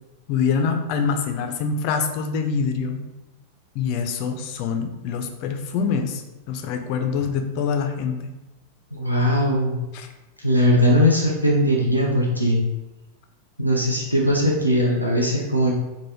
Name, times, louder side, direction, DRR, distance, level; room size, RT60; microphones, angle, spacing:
voice 1, 0.3-3.1 3.8-6.2 6.5-8.3 9.9-10.1, left 6 dB, 45° left, 6 dB, 0.3 m, -25 dB
voice 2, 8.9-9.8 10.4-12.6 13.6-15.7, equal, 85° right, -2 dB, 0.4 m, -19 dB
3.2 x 2.1 x 2.8 m, 1.0 s
figure-of-eight pair, 90°, 0 cm